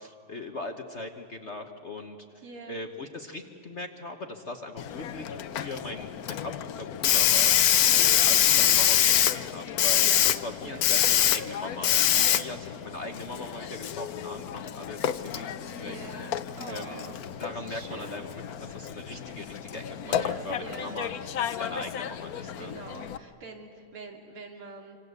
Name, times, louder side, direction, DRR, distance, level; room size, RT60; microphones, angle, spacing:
voice 1, 0.0-16.0 16.7-17.1 17.4-21.1 21.6-22.7, left 2 dB, 40° left, 5 dB, 1.2 m, -40 dB
voice 2, 2.4-2.8 7.8-8.1 9.7-10.3 10.6-10.8 12.1-12.4 15.8-17.2 17.5-18.2 20.0-21.4 22.6-25.0, right 3 dB, 75° right, 3 dB, 3.5 m, -44 dB
Hiss, 4.8-23.2, left 10 dB, 65° left, 0.9 m, -26 dB
26.5 x 26.0 x 8.1 m, 2.8 s
omnidirectional pair, 2.4 m